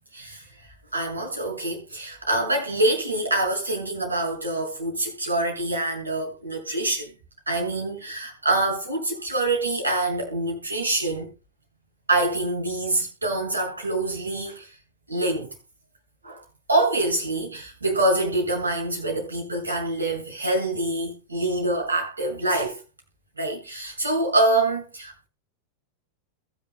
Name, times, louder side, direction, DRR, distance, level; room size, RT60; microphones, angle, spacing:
voice 1, 0.1-0.4 0.9-7.1 7.5-11.3 12.1-14.7 15.1-15.5 16.2-16.4 16.7-22.8 23.4-25.3, right 2 dB, 80° right, 6.8 m, -25 dB
22.5 x 7.6 x 2.2 m
figure-of-eight pair, 90°, 0 cm